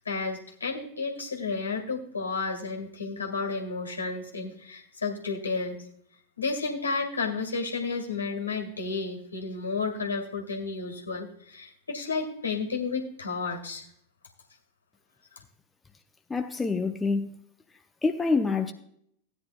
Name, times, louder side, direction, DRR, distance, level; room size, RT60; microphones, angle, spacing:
voice 1, 0.0-5.8 6.4-13.8, left 4 dB, 75° left, 1.9 m, -32 dB
voice 2, 16.3-17.4 18.0-18.7, left 4 dB, 10° left, 0.7 m, -26 dB
16.5 x 9.7 x 2.3 m
figure-of-eight pair, 90°, 0 cm